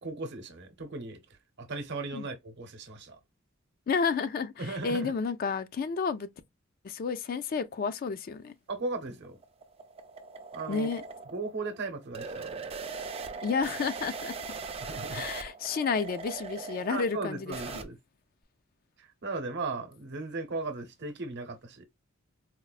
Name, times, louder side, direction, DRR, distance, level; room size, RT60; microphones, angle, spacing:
voice 1, 0.0-1.2 1.6-3.2 4.6-5.1 8.7-9.4 10.5-10.9 11.3-12.7 14.8-15.2 16.9-18.0 19.0-21.9, right 3 dB, 55° right, 0.8 m, -37 dB
voice 2, 3.9-6.3 6.8-8.5 10.7-11.0 13.4-14.4 15.1-17.8, left 5 dB, 45° left, 0.3 m, -31 dB
sound 1, 8.9-17.8, right 4 dB, 30° right, 0.4 m, -40 dB
4.3 x 2.0 x 2.3 m
head